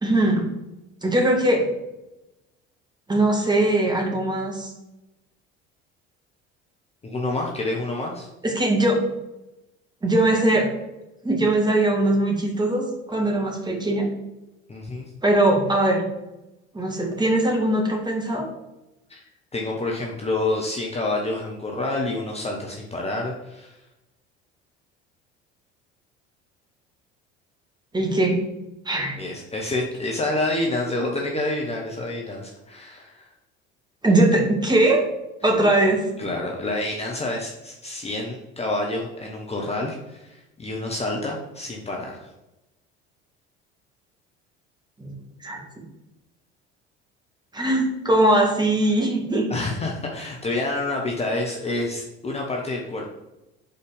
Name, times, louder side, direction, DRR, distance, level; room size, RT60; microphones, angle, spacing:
voice 1, 0.0-0.5 1.0-1.7 3.1-4.7 8.4-9.0 10.0-10.7 11.2-14.1 15.2-16.1 16.7-18.5 27.9-28.4 28.8-29.2 34.0-35.0 35.4-36.1 45.0-45.1 45.4-45.6 47.5-49.5, right 1 dB, 15° right, 1 dB, 1.6 m, -20 dB
voice 2, 7.0-8.3 14.7-15.1 19.1-19.2 19.5-23.8 29.2-33.3 36.2-42.3 49.5-53.1, left 2 dB, 20° left, 0 dB, 1.0 m, -28 dB
5.0 x 4.2 x 5.3 m, 0.95 s
figure-of-eight pair, 60°, 33 cm